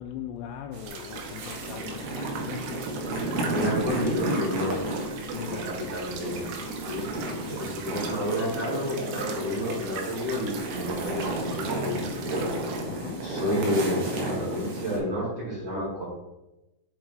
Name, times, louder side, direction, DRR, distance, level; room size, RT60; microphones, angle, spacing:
voice 1, 0.0-2.8 5.3-6.5 7.2-7.5 12.9-13.3, left 9 dB, 85° left, 4 dB, 2.5 m, -40 dB
sound 1, 0.7-15.0, right 1 dB, 60° right, 2.6 m, -33 dB
sound 2, 0.9-12.8, right 5 dB, 90° right, 3.5 m, -40 dB
voice 2, 3.4-4.9 5.2-6.5 6.8-7.0 7.5-12.5 13.2-16.0, equal, 40° right, -7 dB, 3.3 m, -30 dB
7.5 x 4.8 x 4.6 m, 0.96 s
omnidirectional pair, 5.4 m